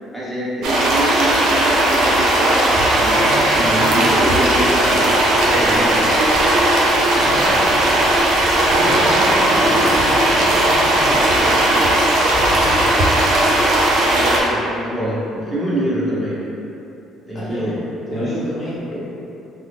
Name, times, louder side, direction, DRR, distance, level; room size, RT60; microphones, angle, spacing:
voice 1, 0.1-2.5 3.0-6.2 14.0-16.4 17.3-17.8 18.1-18.3 18.9-19.0, right 1 dB, 10° right, -10 dB, 1.3 m, -25 dB
sound 1, 0.6-14.4, right 1 dB, 65° right, 0.5 m, -16 dB
voice 2, 3.1-4.1 7.1-7.6 8.6-12.0 17.3-17.7 18.1-18.7, equal, 45° left, -8 dB, 0.9 m, -30 dB
sound 2, 4.5-14.0, equal, 75° left, 0.6 m, -34 dB
3.5 x 2.0 x 3.5 m, 2.9 s
hypercardioid pair, 60°, 0 cm